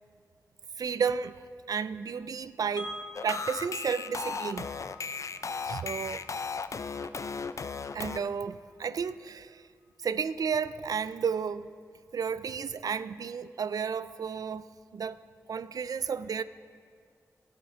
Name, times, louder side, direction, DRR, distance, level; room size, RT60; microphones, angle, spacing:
voice 1, 0.8-1.4 1.7-3.0 3.2-4.7 5.6-6.2 7.2-7.3 7.9-9.6 10.0-11.7 12.1-14.7 14.9-15.2 15.5-16.4, right 6 dB, 75° right, 0.3 m, -32 dB
Wind chime, 2.8-8.7, left 2 dB, 85° left, 1.9 m, -48 dB
sound 1, 3.2-8.2, left 5 dB, 55° left, 0.4 m, -35 dB
14.0 x 7.8 x 4.4 m
cardioid pair, 60°, 6 cm